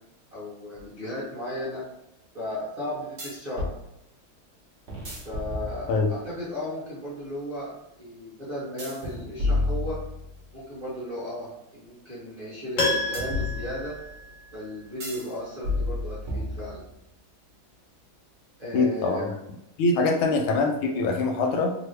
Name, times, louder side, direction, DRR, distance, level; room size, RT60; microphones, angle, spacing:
voice 1, 0.3-1.8 2.3-3.7 5.2-10.0 10.5-14.0 14.5-16.8 18.6-19.3, left 1 dB, 30° right, -9 dB, 0.7 m, -35 dB
sound 1, 0.8-0.9 3.2-3.8 4.9-6.2 8.8-10.5 13.1-14.1 15.0-15.3 15.6-17.0, left 2 dB, 90° right, 0.5 m, -31 dB
Piano, 12.8-14.8 15.1-15.2, left 2 dB, 65° left, 0.8 m, -30 dB
voice 2, 18.7-19.3 19.8-21.7, left 3 dB, 85° left, 3 dB, 1.4 m, -23 dB
3.5 x 2.0 x 3.2 m, 0.86 s
omnidirectional pair, 2.2 m